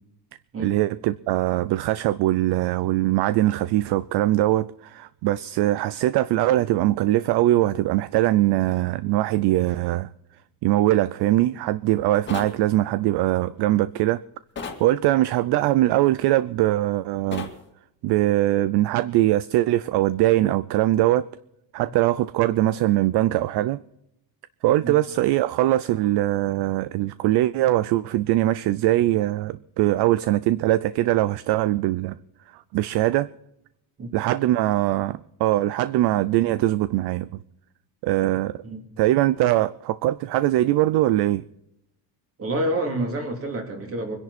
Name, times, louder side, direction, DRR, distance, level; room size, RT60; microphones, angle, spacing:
voice 1, 0.6-10.1 10.6-14.2 14.8-17.5 18.0-21.3 21.7-23.8 24.6-32.2 32.5-33.3 34.1-37.4 38.0-38.6 39.0-41.5, right 15 dB, 55° right, 0.5 m, -22 dB
sound 1, 12.3-12.6 14.6-14.8 17.3-17.6, left 5 dB, 25° left, 2.1 m, -33 dB
voice 2, 42.4-44.2, right 1 dB, 30° right, 3.0 m, -28 dB
24.5 x 11.0 x 4.2 m
cardioid pair, 175°, 48 cm